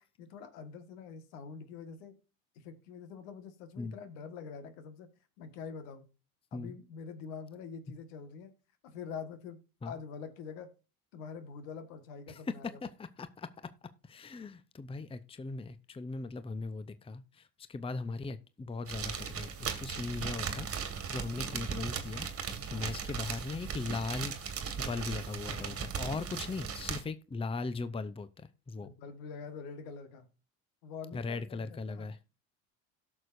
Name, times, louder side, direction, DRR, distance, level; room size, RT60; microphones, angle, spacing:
voice 1, 0.0-2.2 2.5-5.1 5.4-6.0 6.5-8.5 8.8-9.6 9.8-10.7 11.1-12.8 22.7-23.0 28.8-30.3 30.8-32.1, left 6 dB, 80° left, 1.7 m, -45 dB
voice 2, 12.3-13.7 14.0-22.3 22.7-24.4 24.8-28.9 31.1-32.2, left 3 dB, 15° left, 0.7 m, -39 dB
sound 1, 18.9-27.0, right 6 dB, 35° right, 1.8 m, -38 dB
17.5 x 6.6 x 2.6 m
hypercardioid pair, 80°, 41 cm